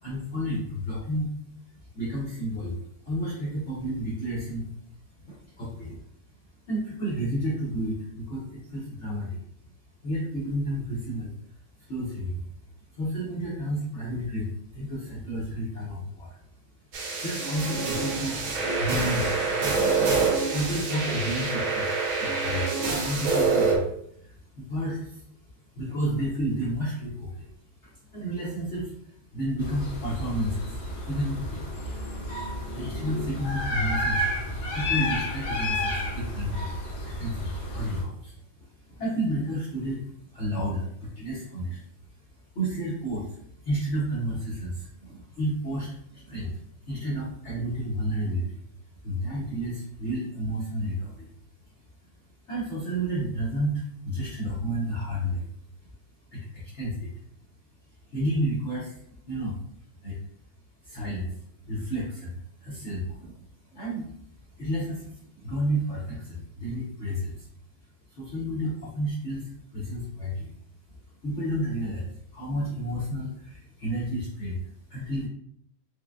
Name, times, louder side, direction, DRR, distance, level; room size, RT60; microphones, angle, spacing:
voice 1, 0.0-1.3 1.7-4.7 5.2-6.0 6.7-9.4 10.0-11.3 11.8-12.5 12.9-16.4 17.1-18.4 18.7-19.5 20.3-27.5 27.8-31.9 32.7-41.9 42.5-48.6 49.0-51.3 52.5-55.5 56.3-57.1 58.1-59.0 59.3-59.6 60.0-60.2 60.8-63.4 63.7-64.1 64.6-67.5 68.1-70.5 71.2-75.3, equal, 50° left, -7 dB, 0.8 m, -31 dB
sound 1, 16.9-23.8, right 4 dB, 90° right, 1.6 m, -26 dB
sound 2, 29.6-38.0, left 1 dB, 70° left, 1.6 m, -31 dB
4.7 x 2.4 x 2.3 m, 0.69 s
omnidirectional pair, 2.2 m